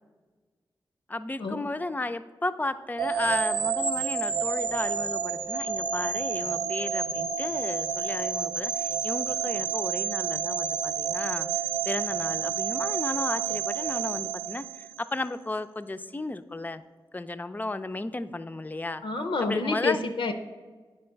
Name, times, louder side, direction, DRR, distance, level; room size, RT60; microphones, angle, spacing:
voice 1, 1.1-11.5 11.9-16.8 17.1-19.0 19.4-20.0, left 2 dB, 20° left, 11 dB, 0.4 m, -34 dB
sound 1, 3.0-15.1, right 7 dB, 65° right, 0.6 m, -29 dB
voice 2, 19.0-20.3, left 3 dB, 75° left, 7 dB, 0.5 m, -28 dB
8.6 x 4.6 x 4.5 m, 1.4 s
cardioid pair, 45°, 9 cm